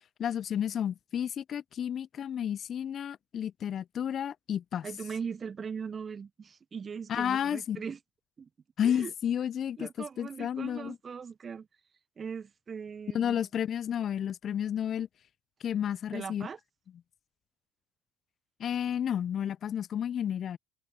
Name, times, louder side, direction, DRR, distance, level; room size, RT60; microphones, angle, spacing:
voice 1, 0.2-4.9 7.1-7.8 8.8-9.9 10.2-11.0 13.1-15.1 15.6-16.5 18.6-20.6, left 9 dB, 50° left, 0.5 m, -31 dB
voice 2, 4.8-8.0 8.4-8.5 8.8-9.1 9.8-11.7 12.2-13.5 16.1-16.6, right 6 dB, 35° right, 0.8 m, -40 dB
hypercardioid pair, 60°, 0 cm